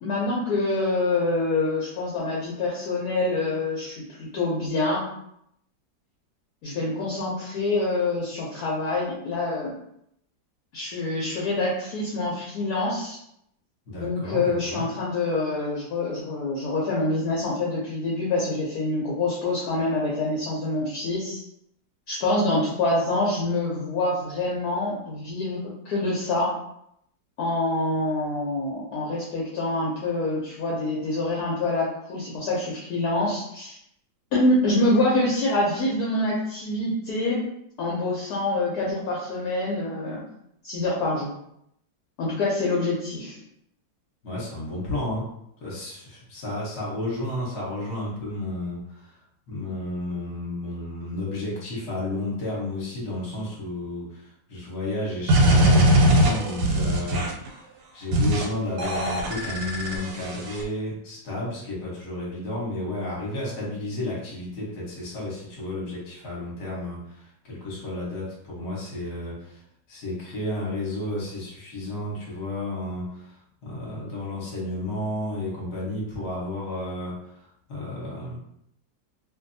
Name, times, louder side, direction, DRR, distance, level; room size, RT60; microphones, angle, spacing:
voice 1, 0.0-5.1 6.6-9.7 10.7-13.2 14.0-21.4 22.1-25.6 25.8-26.5 27.4-33.8 34.3-37.4 37.8-40.2 40.6-41.3 42.2-43.4, left 2 dB, 65° left, -5 dB, 1.0 m, -26 dB
voice 2, 13.9-14.9 44.2-45.3 45.6-49.2 49.5-57.7 57.9-69.6 69.9-78.4, left 1 dB, 45° left, -4 dB, 1.0 m, -32 dB
sound 1, 55.3-57.5 58.1-58.5 58.8-60.6, right 1 dB, 90° right, 1.3 m, -20 dB
2.6 x 2.6 x 2.6 m, 0.75 s
omnidirectional pair, 2.0 m